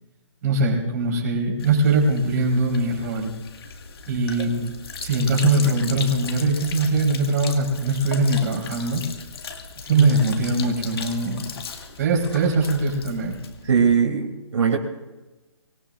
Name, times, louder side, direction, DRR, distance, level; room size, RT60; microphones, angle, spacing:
voice 1, 0.4-3.3 4.1-4.5 5.0-9.0 9.9-11.5 12.0-13.4, right 2 dB, 35° right, -2 dB, 4.5 m, -21 dB
Sink (filling or washing), 1.6-13.9, left 5 dB, 55° left, 1.9 m, -37 dB
voice 2, 4.4-4.7 9.9-10.1 13.6-14.8, right 6 dB, 75° right, 2 dB, 3.1 m, -21 dB
25.0 x 19.5 x 2.6 m, 1.1 s
hypercardioid pair, 165°, 15 cm